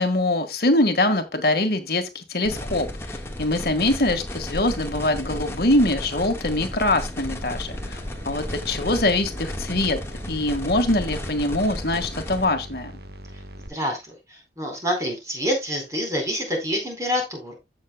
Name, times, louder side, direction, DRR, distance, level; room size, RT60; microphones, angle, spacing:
voice 1, 0.0-10.0 10.3-12.9, left 1 dB, 60° left, 1.6 m, -23 dB
sound 1, 2.4-12.4, left 1 dB, 15° left, 1.5 m, -33 dB
sound 2, 7.7-13.7, equal, 60° right, 1.4 m, -41 dB
voice 2, 13.6-17.6, equal, 20° right, 4.4 m, -27 dB
15.0 x 6.5 x 2.2 m
head